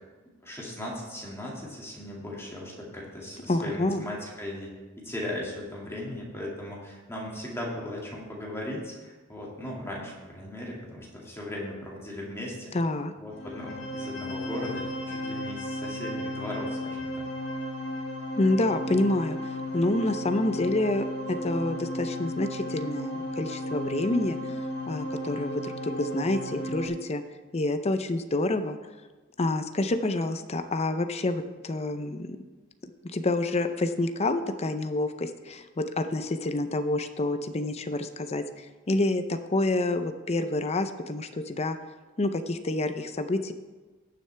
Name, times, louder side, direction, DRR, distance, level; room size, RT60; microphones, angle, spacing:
voice 1, 0.4-12.7 13.2-17.2, left 1 dB, 15° left, -3 dB, 2.2 m, -37 dB
voice 2, 3.5-4.1 12.7-13.1 18.4-24.4 24.9-27.2 27.5-28.8 29.4-32.4 33.0-41.8 42.2-43.5, left 2 dB, 30° left, 9 dB, 0.6 m, -28 dB
sound 1, 13.3-26.9, equal, 85° left, 1.3 m, -34 dB
18.0 x 6.5 x 3.4 m, 1.3 s
head